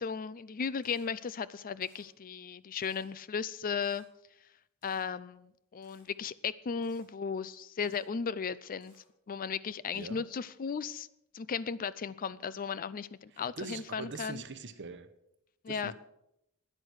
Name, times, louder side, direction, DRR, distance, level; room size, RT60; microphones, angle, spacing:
voice 1, 0.0-4.0 4.8-8.9 9.3-11.1 11.3-14.4 15.6-15.9, left 6 dB, 40° left, 0.4 m, -36 dB
Camera, 0.8-1.1 1.8-2.0 2.8-3.1 3.8-4.0 4.8-5.0 5.8-6.0 6.8-7.0 7.8-8.0 8.8-9.0, left 2 dB, 55° left, 5.6 m, -65 dB
voice 2, 9.9-10.2 13.3-15.1 15.7-15.9, right 4 dB, 55° right, 1.0 m, -43 dB
12.5 x 9.8 x 6.4 m
head